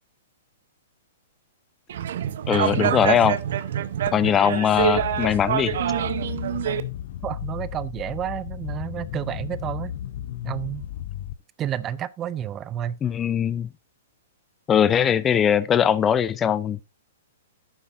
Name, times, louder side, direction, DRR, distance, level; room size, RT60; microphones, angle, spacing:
sound 1, 1.9-6.8, right 10 dB, 65° right, 0.8 m, -26 dB
voice 1, 2.5-3.4 4.1-5.8 13.0-13.7 14.7-16.8, left 8 dB, 20° left, 0.6 m, -21 dB
sound 2, 4.8-11.3, left 10 dB, 55° left, 0.7 m, -34 dB
voice 2, 7.2-9.9 10.4-10.9 11.6-13.0, right 10 dB, 25° right, 0.5 m, -30 dB
11.0 x 8.8 x 2.6 m
hypercardioid pair, 125°, 0 cm